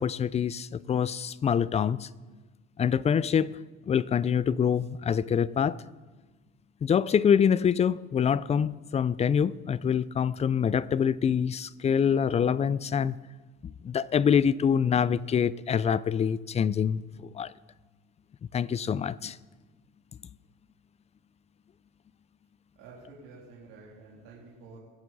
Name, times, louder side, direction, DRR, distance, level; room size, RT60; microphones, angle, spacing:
voice 1, 0.0-2.1 2.8-3.6 3.9-5.8 6.8-13.2 13.6-17.5 18.5-19.4, left 7 dB, 20° left, 0.3 m, -25 dB
voice 2, 22.7-24.8, right 4 dB, 80° right, 3.1 m, -49 dB
20.0 x 7.6 x 4.1 m
supercardioid pair, 85°, 31 cm